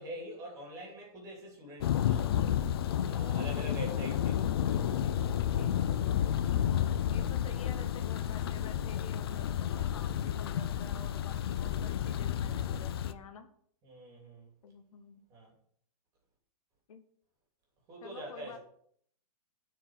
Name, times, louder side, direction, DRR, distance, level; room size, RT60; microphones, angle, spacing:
voice 1, 0.0-2.3 3.0-4.5 6.3-6.5 13.8-14.5 15.3-15.5 17.9-18.6, right 1 dB, 20° right, -1 dB, 2.8 m, -44 dB
Thunder, 1.8-13.1, left 10 dB, 40° left, 0.5 m, -31 dB
voice 2, 3.4-3.8 4.8-5.8 7.1-13.5 14.6-15.2 16.9-17.0 18.0-18.6, left 6 dB, 65° left, 8 dB, 1.1 m, -49 dB
9.5 x 4.8 x 6.4 m, 0.63 s
hypercardioid pair, 175°, 19 cm